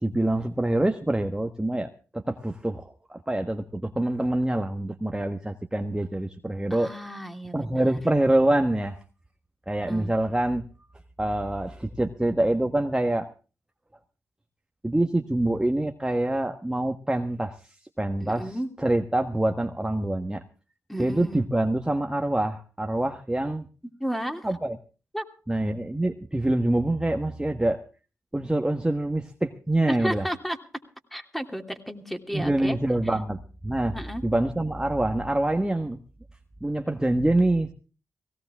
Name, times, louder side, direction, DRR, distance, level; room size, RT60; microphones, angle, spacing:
voice 1, 0.0-6.9 7.5-9.0 9.7-10.6 11.2-13.3 14.8-20.4 21.0-23.7 24.4-24.8 25.5-27.8 28.3-30.3 32.3-33.9 34.2-36.0 36.6-37.7, right 1 dB, 15° right, 6 dB, 1.4 m, -25 dB
voice 2, 6.7-8.0 9.9-10.1 18.2-18.7 20.9-21.4 24.0-24.5 25.1-25.3 29.9-30.6 31.1-32.8 33.9-34.2, equal, 5° left, 6 dB, 2.8 m, -33 dB
18.0 x 17.0 x 3.6 m, 0.36 s
cardioid pair, 50°, 6 cm